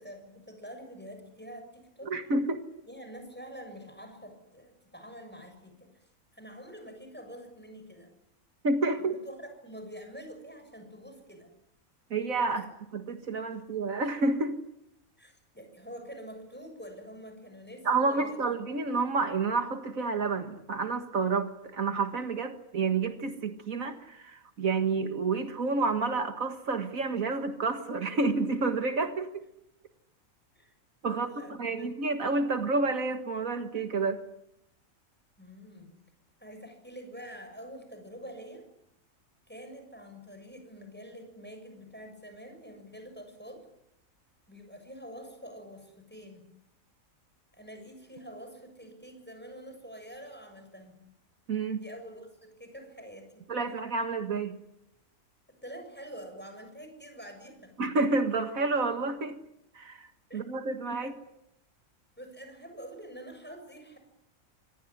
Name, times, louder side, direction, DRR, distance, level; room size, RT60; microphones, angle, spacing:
voice 1, 0.0-2.1 2.9-8.1 9.0-11.5 12.5-12.7 15.2-18.5 28.1-28.2 30.5-30.7 31.1-31.9 35.4-35.9 36.4-38.7 39.5-43.7 44.5-46.4 47.5-51.0 51.8-53.5 55.5-57.7 60.3-60.4 61.0-61.1 62.2-64.0, equal, 5° left, 6 dB, 7.0 m, -46 dB
voice 2, 2.0-2.6 8.6-9.1 12.1-12.7 12.9-14.6 17.9-29.5 31.0-34.2 51.5-51.8 53.5-54.6 57.8-59.4 59.7-61.1, right 3 dB, 70° right, 7 dB, 2.1 m, -29 dB
26.0 x 18.5 x 9.8 m, 0.81 s
omnidirectional pair, 1.5 m